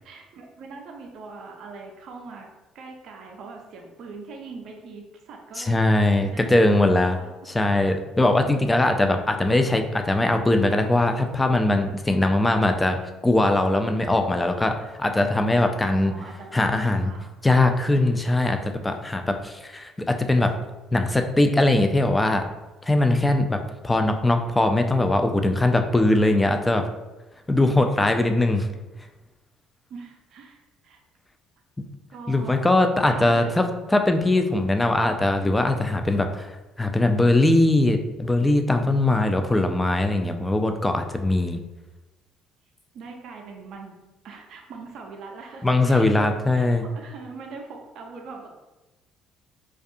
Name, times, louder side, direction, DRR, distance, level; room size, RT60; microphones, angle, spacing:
voice 1, 0.0-2.5 2.7-5.8 6.2-7.3 15.9-17.4 29.9-31.0 32.1-32.6 33.1-33.5 42.9-44.0 44.2-46.7 46.9-48.5, right 4 dB, 65° right, 2 dB, 0.4 m, -41 dB
voice 2, 5.6-7.2 7.5-13.0 13.2-16.1 16.5-17.1 17.4-20.5 20.9-22.5 22.8-26.9 27.5-28.7 32.3-41.6 45.6-46.8, left 2 dB, 15° left, 6 dB, 0.3 m, -21 dB
2.3 x 2.2 x 2.7 m, 1.1 s
supercardioid pair, 65°, 0 cm